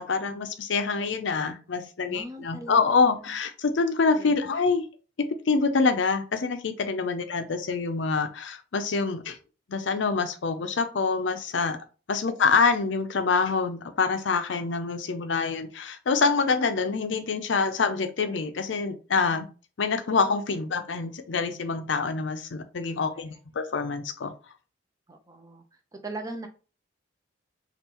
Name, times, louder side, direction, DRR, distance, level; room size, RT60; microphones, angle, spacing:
voice 1, 0.0-4.9 5.5-9.4 9.7-11.8 12.1-19.5 19.8-24.3, left 4 dB, 70° left, 9 dB, 0.5 m, -26 dB
voice 2, 2.0-3.3 4.2-4.4 25.1-25.6 25.9-26.5, right 2 dB, 20° right, 4 dB, 0.6 m, -40 dB
5.3 x 2.5 x 2.9 m, 0.36 s
head